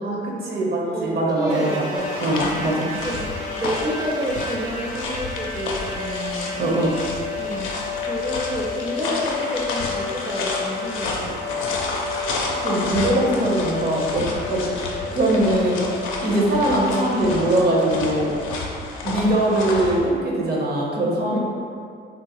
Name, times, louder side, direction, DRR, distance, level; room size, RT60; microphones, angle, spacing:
voice 1, 0.0-1.9 2.2-2.9 6.6-7.0 12.2-14.6 15.1-15.8 16.2-18.3 19.0-21.4, right 1 dB, 55° right, -3 dB, 0.8 m, -22 dB
voice 2, 0.9-2.4 2.9-3.3 3.6-6.6 7.3-11.6 14.1-14.4 16.3-16.6 21.3-21.4, equal, 20° right, -4 dB, 0.4 m, -30 dB
sound 1, 1.5-18.6, left 5 dB, 90° right, 1.3 m, -32 dB
sound 2, 2.0-20.0, left 3 dB, 90° left, 0.5 m, -31 dB
3.8 x 2.1 x 2.9 m, 2.3 s
cardioid pair, 90°, 20 cm